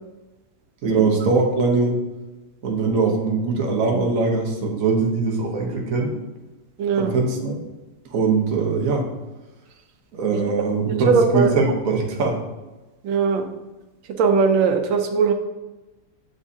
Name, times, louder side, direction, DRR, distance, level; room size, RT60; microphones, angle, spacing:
voice 1, 0.8-2.0 2.6-6.1 6.9-7.6 8.1-9.1 10.1-12.4, right 4 dB, 50° right, 0 dB, 1.2 m, -21 dB
voice 2, 6.8-7.1 10.3-10.4 11.0-11.6 13.0-13.4 14.2-15.3, right 5 dB, 85° right, 5 dB, 1.5 m, -19 dB
6.9 x 6.0 x 2.7 m, 1.1 s
omnidirectional pair, 2.1 m